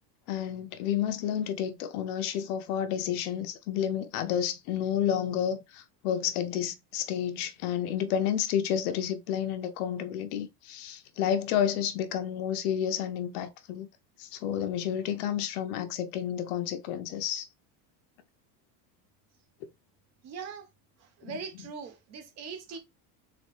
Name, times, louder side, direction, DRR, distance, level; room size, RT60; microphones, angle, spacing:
voice 1, 0.3-13.9 14.2-17.5 21.2-21.4, left 9 dB, 70° left, 0.9 m, -30 dB
voice 2, 20.2-20.7 21.0-22.8, right 5 dB, 35° right, 1.1 m, -41 dB
4.0 x 3.9 x 3.3 m
cardioid pair, 165°, 47 cm